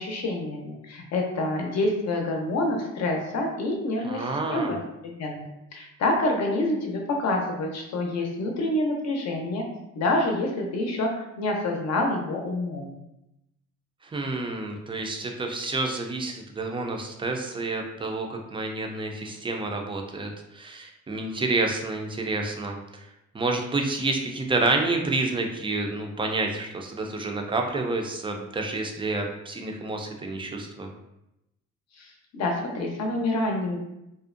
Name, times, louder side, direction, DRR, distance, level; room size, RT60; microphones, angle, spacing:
voice 1, 0.0-9.7 9.9-12.9 31.9-33.8, left 2 dB, 60° left, 2 dB, 0.6 m, -27 dB
voice 2, 4.0-4.8 14.1-22.8 23.3-30.9, right 2 dB, 15° right, 2 dB, 0.3 m, -29 dB
2.5 x 2.0 x 2.5 m, 0.89 s
cardioid pair, 90°, 30 cm